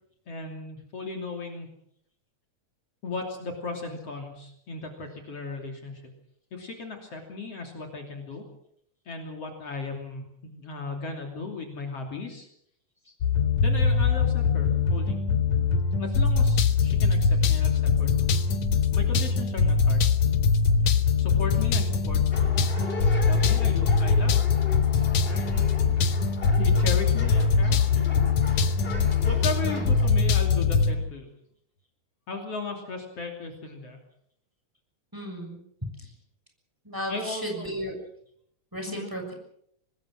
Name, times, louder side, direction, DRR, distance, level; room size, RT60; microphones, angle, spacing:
voice 1, 0.3-1.7 3.0-6.0 6.5-8.4 9.1-12.5 13.6-15.2 16.0-18.3 18.9-20.1 21.2-22.4 23.3-24.5 25.2-25.5 26.6-28.1 29.3-31.3 32.3-34.0 37.1-37.7 38.8-39.1, left 3 dB, 55° left, 2 dB, 3.9 m, -36 dB
sound 1, 13.2-30.9, left 5 dB, 70° left, 2.6 m, -22 dB
sound 2, 22.3-30.1, left 3 dB, 20° left, 3.3 m, -38 dB
voice 2, 35.1-35.6 36.0-36.1 36.8-37.9 38.7-39.3, equal, 5° right, 2 dB, 6.5 m, -35 dB
25.0 x 20.0 x 6.4 m, 0.71 s
omnidirectional pair, 3.3 m